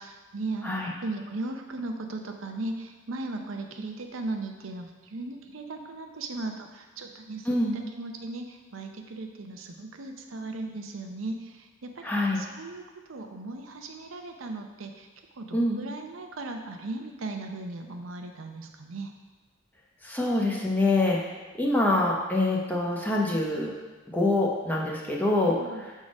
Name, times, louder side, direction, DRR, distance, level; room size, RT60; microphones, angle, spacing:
voice 1, 0.0-12.1 12.3-15.1 15.3-19.1 25.6-25.8, right 2 dB, 80° right, 4 dB, 0.6 m, -37 dB
voice 2, 12.0-12.4 15.5-15.8 20.0-23.7 24.1-25.9, left 2 dB, 10° left, -3 dB, 0.8 m, -25 dB
6.5 x 3.7 x 5.2 m, 1.3 s
head